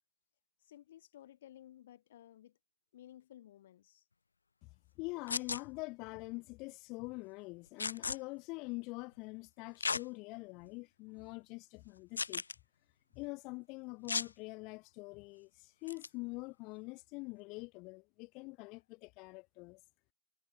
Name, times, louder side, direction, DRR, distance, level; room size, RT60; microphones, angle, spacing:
voice 1, 0.6-2.6 2.9-4.0, left 12 dB, 60° left, 3.7 m, -56 dB
voice 2, 5.0-12.4 13.1-19.8, left 26 dB, 40° left, 0.8 m, -45 dB
sound 1, 5.3-5.6 7.8-8.2 9.8-10.0 10.6-10.7 12.2-12.5 14.1-14.3 15.9-16.1, left 4 dB, 80° left, 0.6 m, -35 dB
figure-of-eight pair, 110°, 0 cm